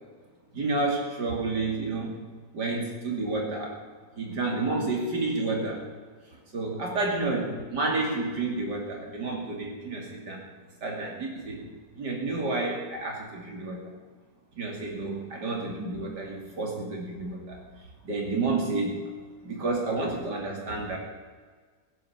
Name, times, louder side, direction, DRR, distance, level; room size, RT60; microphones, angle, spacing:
voice 1, 0.5-2.2 2.5-3.7 4.2-5.8 6.5-10.4 10.8-11.6 12.0-13.8 14.5-17.6 18.0-19.1 19.4-21.0, right 3 dB, 70° right, -1 dB, 3.2 m, -30 dB
16.0 x 9.7 x 7.1 m, 1.5 s
omnidirectional pair, 1.9 m